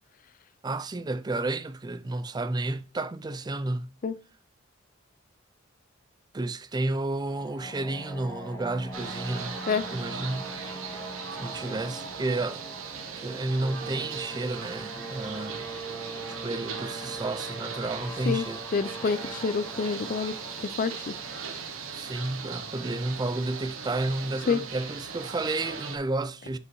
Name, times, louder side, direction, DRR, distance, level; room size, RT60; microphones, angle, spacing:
voice 1, 0.6-3.9 6.3-9.5 9.9-10.5 11.4-12.6 13.2-15.7 16.3-18.6 21.9-26.6, right 2 dB, 20° right, 0.4 m, -31 dB
sound 1, 7.1-23.0, right 2 dB, 15° left, 1.3 m, -42 dB
sound 2, 8.9-26.0, right 6 dB, 75° right, 1.2 m, -39 dB
voice 2, 18.7-21.1 24.5-24.6, left 5 dB, 40° left, 0.4 m, -28 dB
8.2 x 5.3 x 3.1 m
head